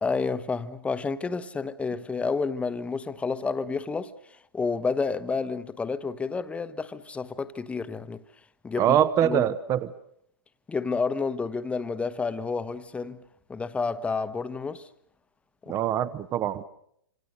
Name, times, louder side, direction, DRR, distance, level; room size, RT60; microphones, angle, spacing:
voice 1, 0.0-8.2 8.6-9.5 10.7-13.2 13.5-14.9 15.6-15.8, left 4 dB, 10° left, 1.2 m, -30 dB
voice 2, 8.8-9.9 15.7-16.6, right 10 dB, 25° right, 1.1 m, -24 dB
27.0 x 26.5 x 6.6 m
hypercardioid pair, 115°, 12 cm